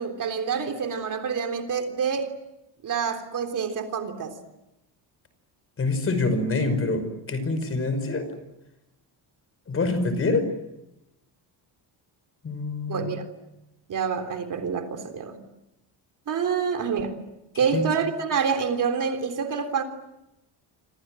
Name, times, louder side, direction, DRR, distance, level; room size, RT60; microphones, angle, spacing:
voice 1, 0.0-2.3 2.8-4.4 12.9-13.2 13.9-15.4 16.3-17.2 17.6-19.8, right 6 dB, 45° right, 6 dB, 3.6 m, -27 dB
voice 2, 5.8-8.3 9.7-10.5 12.4-13.1 17.7-17.9, left 3 dB, 30° left, 10 dB, 5.5 m, -26 dB
28.5 x 26.5 x 7.8 m, 0.91 s
cardioid pair, 155°, 43 cm